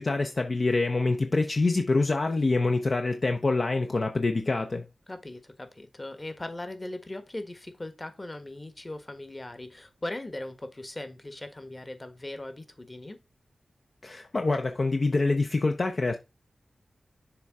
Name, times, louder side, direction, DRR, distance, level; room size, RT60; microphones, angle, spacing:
voice 1, 0.0-4.9 14.0-16.2, left 3 dB, 50° left, 0.8 m, -26 dB
voice 2, 5.1-13.2, left 1 dB, 30° left, 1.4 m, -39 dB
6.9 x 3.6 x 4.8 m
cardioid pair, 60°, 0 cm